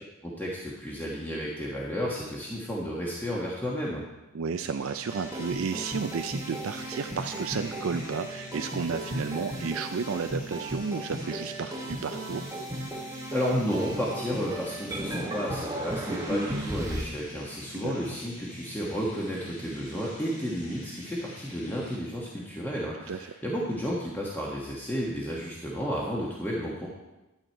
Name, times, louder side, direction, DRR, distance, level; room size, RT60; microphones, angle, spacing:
voice 1, 0.2-4.0 13.3-26.9, equal, 10° left, -4 dB, 1.3 m, -32 dB
voice 2, 4.3-12.4 17.7-18.0 23.1-23.2, right 5 dB, 65° right, 8 dB, 0.4 m, -32 dB
sound 1, 4.5-22.0, right 1 dB, 35° left, 2.3 m, -45 dB
sound 2, 5.1-17.0, right 1 dB, 15° right, 1.2 m, -35 dB
12.5 x 8.0 x 4.5 m, 1.0 s
head